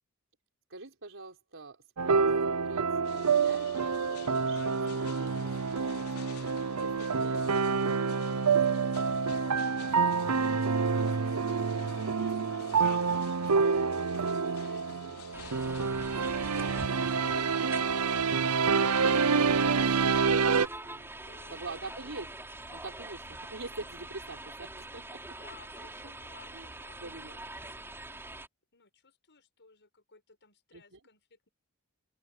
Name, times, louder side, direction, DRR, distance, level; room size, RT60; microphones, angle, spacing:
voice 1, 0.7-1.8 2.0-2.2 2.6-8.8 14.7-15.3 19.7-21.1 21.5-22.3 22.7-25.2 26.0-26.2 26.5-26.7 27.0-27.4 30.7-31.0, right 3 dB, 60° right, 4.8 m, -46 dB
sound 1, 2.0-20.7, right 5 dB, 85° right, 0.7 m, -27 dB
sound 2, 3.0-19.5, left 6 dB, 70° left, 4.1 m, -51 dB
voice 2, 9.2-14.0 14.4-19.1 21.2-22.0 25.3-28.0 28.7-31.5, left 5 dB, 55° left, 7.5 m, -59 dB
sound 3, 15.3-28.5, right 2 dB, 10° right, 4.0 m, -44 dB
head